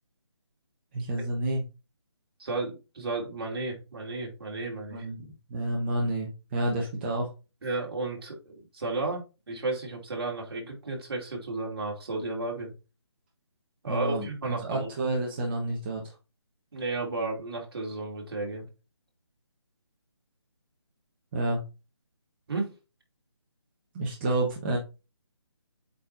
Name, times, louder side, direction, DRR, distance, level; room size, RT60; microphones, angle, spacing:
voice 1, 0.9-1.6 4.9-7.3 13.9-14.3 14.6-16.0 21.3-21.6 23.9-24.8, right 1 dB, 25° right, -1 dB, 1.1 m, -29 dB
voice 2, 2.4-5.1 7.6-12.7 13.8-14.9 16.7-18.7 22.5-22.7, right 3 dB, 55° right, 0 dB, 2.6 m, -33 dB
8.3 x 4.4 x 2.6 m, 0.30 s
figure-of-eight pair, 160°, 15 cm